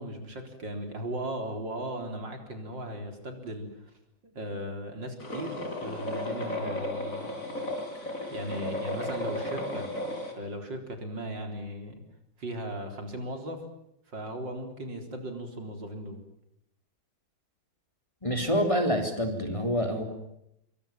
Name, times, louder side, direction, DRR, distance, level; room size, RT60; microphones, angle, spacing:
voice 1, 0.0-3.9 4.2-7.3 8.0-9.9 10.3-12.0 12.4-13.6 14.1-16.2, right 1 dB, 60° right, 5 dB, 4.6 m, -37 dB
sound 1, 5.2-10.3, left 1 dB, 40° left, 5.4 m, -34 dB
voice 2, 18.2-20.0, equal, 15° left, 4 dB, 3.6 m, -27 dB
27.0 x 24.0 x 7.4 m, 0.79 s
omnidirectional pair, 2.2 m